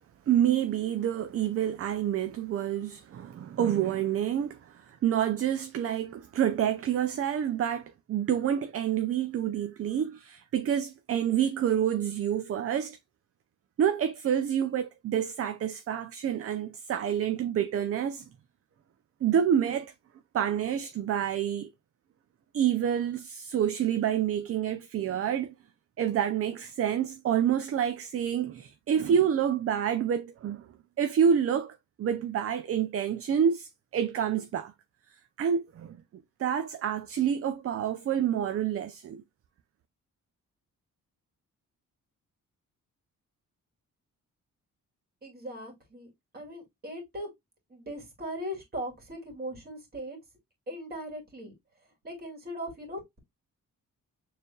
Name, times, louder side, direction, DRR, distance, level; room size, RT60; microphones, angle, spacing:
voice 1, 0.3-13.0 13.8-18.3 19.2-19.9 20.3-21.7 22.5-25.5 26.0-30.7 31.0-34.7 35.4-36.0 36.4-39.2, right 9 dB, 45° right, 0.4 m, -28 dB
voice 2, 45.2-47.3 47.7-50.2 50.7-51.5 52.0-53.2, equal, 30° right, 2.4 m, -39 dB
6.7 x 3.3 x 2.2 m
wide cardioid pair, 160°, 32 cm